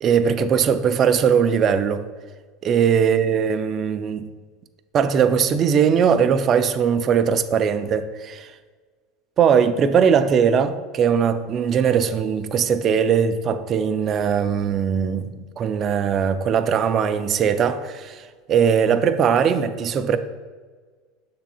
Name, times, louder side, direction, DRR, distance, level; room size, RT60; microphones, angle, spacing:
voice 1, 0.0-2.1 2.6-4.3 4.9-8.5 9.4-15.3 15.6-20.2, right 7 dB, 25° right, 0.3 m, -20 dB
6.8 x 3.4 x 4.3 m
supercardioid pair, 165°, 0 cm